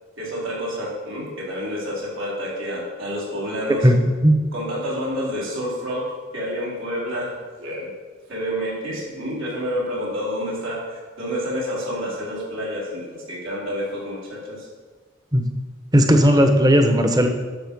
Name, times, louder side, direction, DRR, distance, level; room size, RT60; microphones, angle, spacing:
voice 1, 0.2-3.9 4.5-7.9 8.3-14.7, equal, 80° right, -5 dB, 4.0 m, -29 dB
voice 2, 15.9-17.3, equal, 20° right, 5 dB, 0.9 m, -15 dB
11.5 x 7.0 x 5.4 m, 1.4 s
head